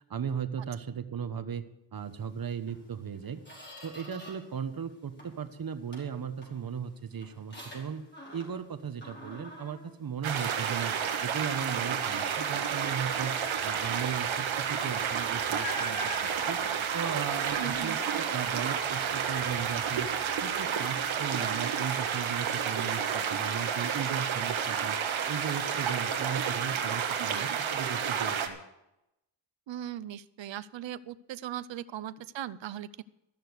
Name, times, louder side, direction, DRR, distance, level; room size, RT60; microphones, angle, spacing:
voice 1, 0.1-1.6 1.9-3.4 3.8-8.0 8.3-10.9 11.2-16.6 16.9-25.0 25.3-28.6, right 7 dB, 50° right, 10 dB, 1.1 m, -37 dB
Squeak, 2.6-2.8 3.2-4.6 4.9-5.5 5.9-8.7 9.0-10.8 11.3-11.5 11.9-12.5 14.7-14.8 15.5-17.8, left 1 dB, 25° left, 4.9 m, -45 dB
sound 1, 10.2-28.5, right 7 dB, 85° right, 1.4 m, -31 dB
voice 2, 17.6-18.0 27.2-27.6 29.7-33.0, right 11 dB, 70° right, 16 dB, 0.7 m, -39 dB
14.0 x 6.6 x 8.0 m, 0.87 s
cardioid pair, 80°, 46 cm